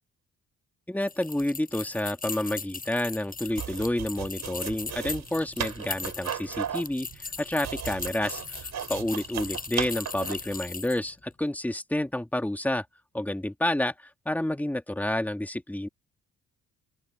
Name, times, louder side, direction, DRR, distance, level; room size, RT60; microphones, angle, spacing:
voice 1, 0.9-12.8 13.1-13.9 14.3-15.9, left 1 dB, 5° left, 2.4 m, -29 dB
sound 1, 1.0-11.1, left 4 dB, 30° left, 6.5 m, -39 dB
sound 2, 3.5-10.5, right 9 dB, 65° right, 7.3 m, -36 dB
open air
cardioid pair, 90°, 30 cm